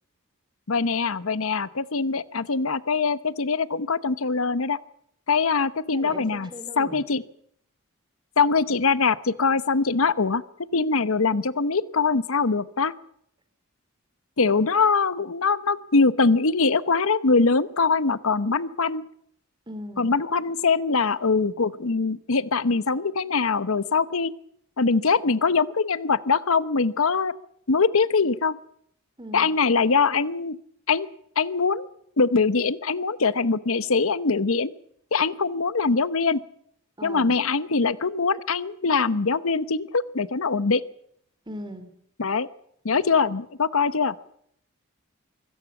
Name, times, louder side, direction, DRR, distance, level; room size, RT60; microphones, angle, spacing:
voice 1, 0.7-4.8 5.3-6.5 6.8-7.2 8.4-10.4 10.7-12.9 14.4-19.0 20.0-24.3 24.8-27.3 27.7-28.6 29.3-30.6 30.9-31.1 31.4-31.9 32.2-34.7 35.1-36.4 37.0-40.8 42.2-42.5 42.8-44.1, left 4 dB, 75° left, 16 dB, 0.9 m, -23 dB
voice 2, 5.9-7.0 19.7-20.1 29.2-29.5 37.0-37.4 41.5-42.0, equal, 20° right, 11 dB, 2.7 m, -39 dB
24.0 x 17.0 x 7.1 m, 0.69 s
head